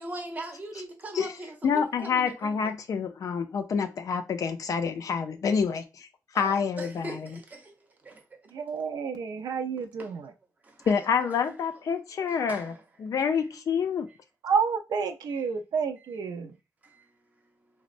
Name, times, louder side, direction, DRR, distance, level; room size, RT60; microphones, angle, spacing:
voice 1, 0.0-2.7 6.3-7.7 8.0-8.2 10.6-10.9 11.2-11.3 12.3-12.8 13.0-13.1 16.8-17.1, right 1 dB, 25° right, 0.7 m, -40 dB
voice 2, 1.6-6.1 6.3-7.4 10.9-14.1, left 6 dB, 55° left, 0.4 m, -28 dB
voice 3, 8.5-10.3 14.4-16.5, right 6 dB, 75° right, 0.4 m, -30 dB
4.0 x 2.0 x 2.5 m
wide cardioid pair, 170°, 7 cm